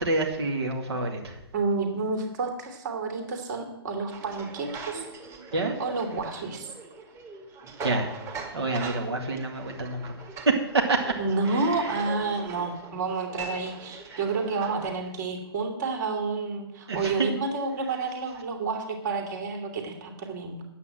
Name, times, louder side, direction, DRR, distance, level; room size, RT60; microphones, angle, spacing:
voice 1, 0.0-1.4 5.5-5.8 7.8-8.2 8.5-10.2 10.4-11.1 11.4-12.0 14.1-14.2 14.7-14.8 16.9-17.4, right 3 dB, 75° right, 1 dB, 2.1 m, -28 dB
voice 2, 1.5-5.0 5.8-6.7 11.2-20.6, right 4 dB, 45° right, 3 dB, 2.8 m, -30 dB
sound 1, 4.1-14.9, right 4 dB, 20° right, 1.8 m, -41 dB
9.3 x 8.4 x 7.6 m, 0.89 s
figure-of-eight pair, 130°, 14 cm